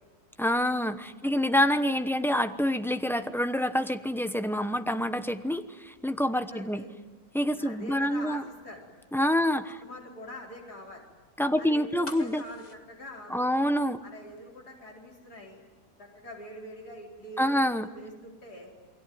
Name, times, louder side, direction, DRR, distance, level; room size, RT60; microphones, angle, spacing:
voice 1, 0.4-6.8 7.3-8.4 9.1-9.7 11.4-12.4 13.3-14.0 17.4-17.9, equal, ahead, 9 dB, 0.7 m, -27 dB
voice 2, 6.2-6.9 7.6-8.8 9.3-9.5 9.8-11.0 11.6-13.6 14.0-15.6 16.0-18.7, left 1 dB, 85° left, -2 dB, 4.9 m, -45 dB
sound 1, 12.0-14.1 14.4-14.5, left 2 dB, 25° left, 1.6 m, -45 dB
28.5 x 22.0 x 9.5 m, 1.2 s
omnidirectional pair, 1.6 m